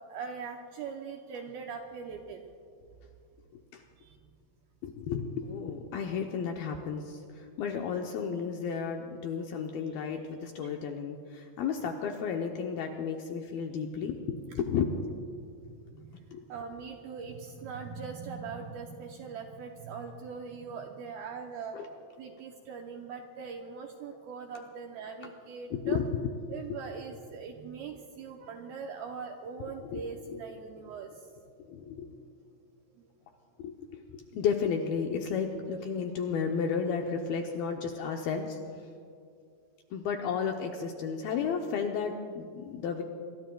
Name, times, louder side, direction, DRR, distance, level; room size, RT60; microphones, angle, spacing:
voice 1, 0.0-2.5 4.0-4.3 10.6-10.8 15.6-21.8 22.2-26.0 26.5-31.8 33.0-33.1, right 5 dB, 80° right, 2 dB, 2.2 m, -41 dB
voice 2, 4.8-14.9 16.3-16.4 21.7-21.9 25.7-26.3 26.7-26.8 29.9-30.0 30.3-30.4 31.7-32.2 33.6-38.6 39.9-43.0, left 6 dB, 75° left, 2 dB, 2.2 m, -33 dB
27.0 x 21.5 x 2.3 m, 2.5 s
omnidirectional pair, 5.2 m